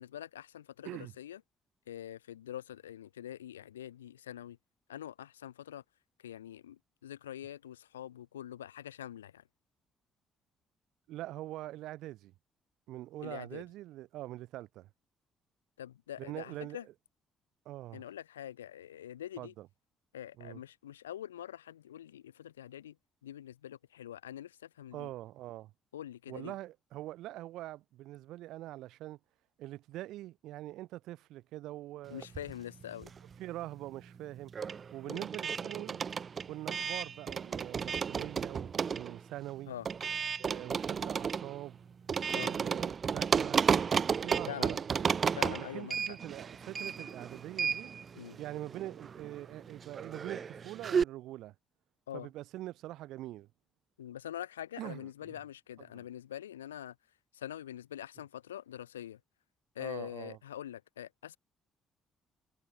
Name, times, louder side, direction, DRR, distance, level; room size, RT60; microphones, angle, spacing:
voice 1, 0.0-1.4 1.9-4.6 4.9-5.8 6.2-9.4 13.2-13.6 15.8-16.8 17.9-19.5 20.1-23.0 23.2-25.1 25.9-26.5 32.1-33.1 35.0-35.2 39.7-39.9 42.3-42.5 44.5-44.8 45.4-46.2 48.1-48.4 52.1-52.3 54.0-56.9 57.3-59.2 59.7-61.4, left 11 dB, 80° left, 4.7 m, -44 dB
voice 2, 11.1-12.3 12.9-14.9 16.2-16.8 17.6-18.0 19.4-19.7 20.4-20.6 24.9-25.7 26.3-29.2 29.6-32.3 33.4-34.5 34.9-36.0 36.5-39.7 40.4-41.8 42.3-43.6 44.1-45.2 45.7-47.9 48.4-51.5 52.1-53.5 54.8-55.4 55.9-56.1 59.8-60.4, right 15 dB, 60° right, 6.0 m, -44 dB
sound 1, 32.2-33.5 33.7-51.0, right 6 dB, 40° right, 1.3 m, -33 dB
figure-of-eight pair, 45°, 0 cm